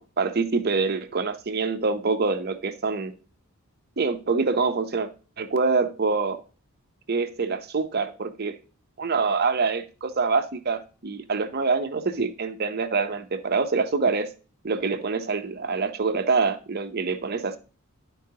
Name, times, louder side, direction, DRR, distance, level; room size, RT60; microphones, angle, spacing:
voice 1, 0.0-3.1 4.0-5.1 5.4-6.4 7.1-8.6 9.0-14.3 14.6-17.6, right 4 dB, 45° right, 8 dB, 0.7 m, -25 dB
11.5 x 4.6 x 2.8 m, 0.36 s
head